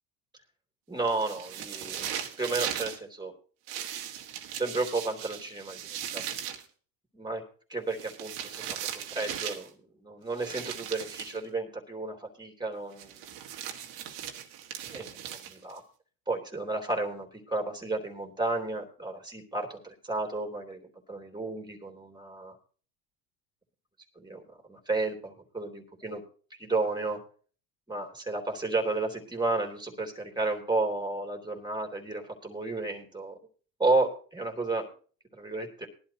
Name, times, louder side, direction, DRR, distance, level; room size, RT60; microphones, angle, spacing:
voice 1, 0.9-2.1 2.4-3.3 4.5-5.8 6.1-6.2 7.1-7.4 7.7-8.8 9.0-13.2 14.8-15.8 16.3-22.6 24.2-24.4 24.7-26.2 26.6-27.2 27.9-33.4 33.8-34.9 35.3-35.9, right 3 dB, 10° right, 2 dB, 3.0 m, -32 dB
sound 1, 1.0-3.0 3.7-6.6 7.9-9.7 10.4-11.4 13.0-15.8, right 10 dB, 75° right, 1.8 m, -38 dB
19.0 x 11.5 x 2.9 m, 0.41 s
supercardioid pair, 95°, 46 cm